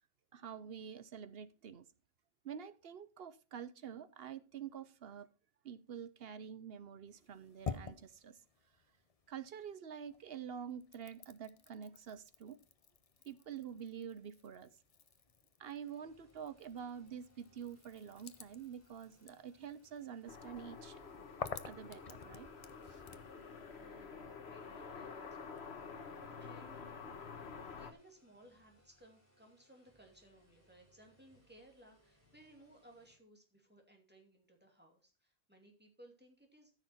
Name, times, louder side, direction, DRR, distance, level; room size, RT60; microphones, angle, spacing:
voice 1, 0.3-1.9 2.4-5.3 5.6-8.4 9.3-12.6 13.2-14.7 15.6-21.0 21.6-22.5 22.9-23.0, right 8 dB, 65° right, 0.9 m, -47 dB
sound 1, 7.1-9.7 10.1-23.3, left 5 dB, 35° left, 0.7 m, -51 dB
sound 2, 15.8-33.2, equal, 15° left, 4.2 m, -71 dB
sound 3, 20.3-27.9, left 5 dB, 70° left, 1.5 m, -49 dB
voice 2, 23.0-23.4 23.7-26.0 26.4-27.0 27.8-36.7, right 1 dB, 10° right, 2.6 m, -62 dB
14.0 x 6.4 x 4.3 m
omnidirectional pair, 1.1 m